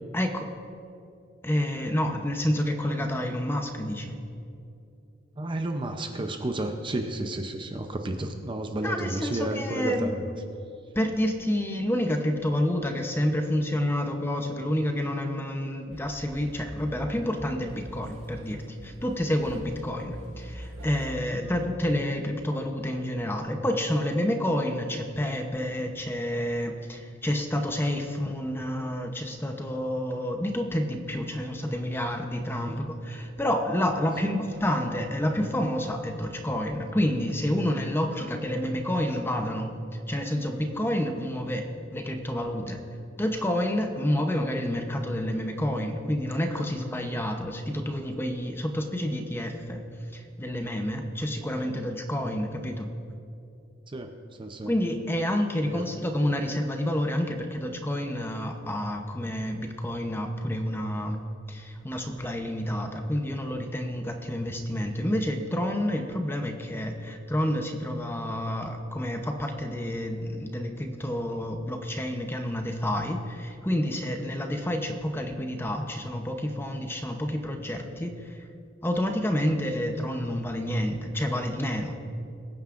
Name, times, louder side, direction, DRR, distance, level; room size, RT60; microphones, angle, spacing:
voice 1, 0.1-0.5 1.4-4.2 8.8-10.2 10.9-39.7 40.1-42.8 43.2-49.8 50.1-52.9 54.7-61.2 61.5-78.4 78.8-82.0, left 1 dB, 10° left, 4 dB, 0.8 m, -29 dB
voice 2, 5.4-10.2 21.4-21.5 32.5-32.9 34.2-34.3 53.9-54.1 54.4-54.7 55.6-55.8 79.4-79.5, right 1 dB, 25° right, 5 dB, 0.6 m, -32 dB
sound 1, 15.9-21.1, right 1 dB, 80° right, 2.1 m, -43 dB
22.5 x 9.3 x 2.5 m, 2.5 s
head